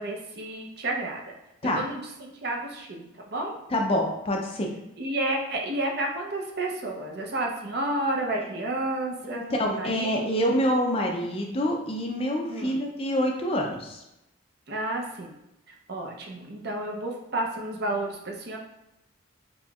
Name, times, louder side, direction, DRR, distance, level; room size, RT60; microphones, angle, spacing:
voice 1, 0.0-1.3 1.6-3.5 5.0-10.3 12.5-12.8 14.7-15.4 15.9-18.6, right 1 dB, 55° right, 0 dB, 0.6 m, -31 dB
voice 2, 3.7-4.7 9.2-14.0, equal, 30° left, 1 dB, 0.4 m, -26 dB
4.1 x 3.0 x 2.3 m, 0.90 s
head